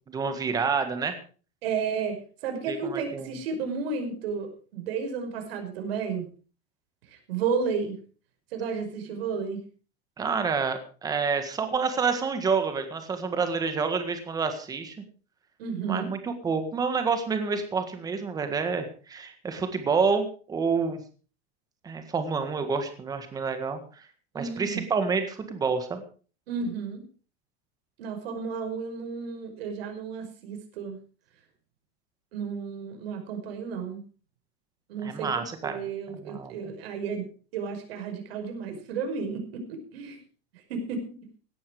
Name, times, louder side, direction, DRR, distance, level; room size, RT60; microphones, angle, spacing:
voice 1, 0.1-1.2 2.7-3.4 10.2-15.0 15.9-21.0 21.8-24.0 24.3-26.0 35.0-35.8 36.1-36.5, right 5 dB, 10° right, 8 dB, 1.7 m, -28 dB
voice 2, 1.6-6.2 7.3-8.0 8.5-9.6 15.6-16.1 24.3-24.8 26.5-27.0 28.0-31.0 32.3-34.0 34.9-40.2 40.7-41.1, right 5 dB, 70° right, 5 dB, 5.8 m, -32 dB
17.0 x 11.5 x 4.9 m, 0.38 s
supercardioid pair, 180°, 31 cm